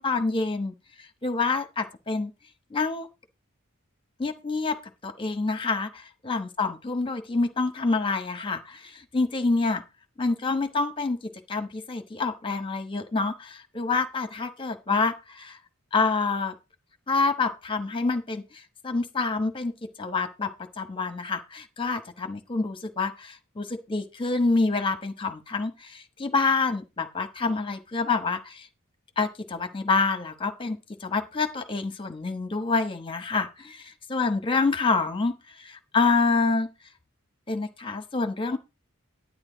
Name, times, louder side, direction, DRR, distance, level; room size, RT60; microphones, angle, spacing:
voice 1, 0.0-2.3 2.7-3.1 4.2-4.8 5.0-9.8 10.2-11.2 11.5-15.6 15.9-16.5 17.1-19.7 20.0-28.7 29.2-36.7 37.5-38.6, left 3 dB, 25° left, 8 dB, 1.1 m, -27 dB
10.5 x 9.6 x 3.9 m, 0.27 s
head